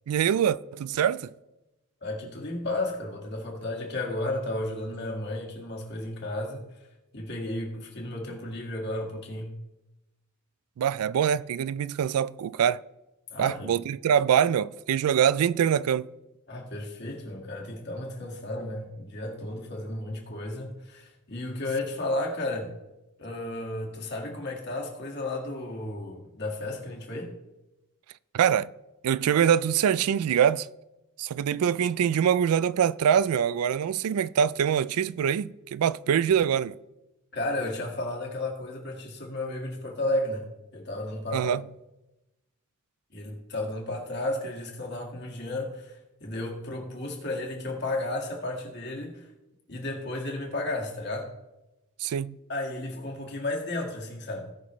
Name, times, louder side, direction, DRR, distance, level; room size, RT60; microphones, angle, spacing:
voice 1, 0.1-1.3 10.8-12.8 13.4-16.1 28.3-28.7 29.0-30.7 31.2-36.8 41.3-41.6 52.0-52.4, right 8 dB, 90° right, 0.3 m, -24 dB
voice 2, 2.0-6.6 7.1-9.5 13.3-13.8 16.5-22.8 23.2-27.3 37.3-41.5 43.1-49.3 49.7-51.3 52.5-54.5, left 2 dB, 50° left, 1.9 m, -33 dB
17.5 x 6.0 x 3.1 m
head